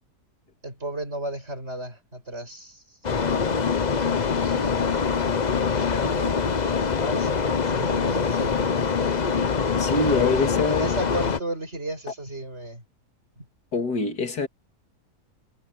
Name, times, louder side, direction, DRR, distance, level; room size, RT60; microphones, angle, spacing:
voice 1, 0.6-3.0 3.9-6.4 6.9-8.7 10.2-10.3 10.7-12.8 13.4-13.5, right 1 dB, 40° right, 6.9 m, -34 dB
sound 1, 3.0-11.4, left 5 dB, 35° left, 0.8 m, -24 dB
voice 2, 9.8-10.9 13.7-14.5, left 3 dB, 85° left, 2.9 m, -24 dB
omnidirectional pair, 1.7 m